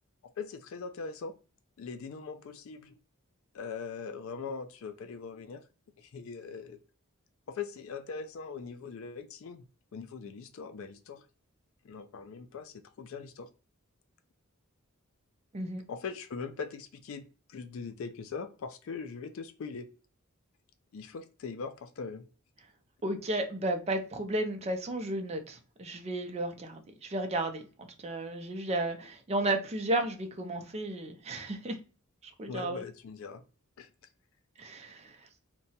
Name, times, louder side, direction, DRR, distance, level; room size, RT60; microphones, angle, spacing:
voice 1, 0.4-1.3 1.8-3.0 3.5-5.6 6.0-6.8 7.5-9.6 9.9-11.2 11.8-13.5 15.9-19.9 20.9-22.2 32.5-33.4 33.8-33.9, left 5 dB, 70° left, 8 dB, 0.4 m, -41 dB
voice 2, 23.0-31.8 32.4-32.8 34.6-35.2, right 1 dB, 30° right, 6 dB, 0.5 m, -33 dB
2.8 x 2.2 x 2.7 m, 0.34 s
head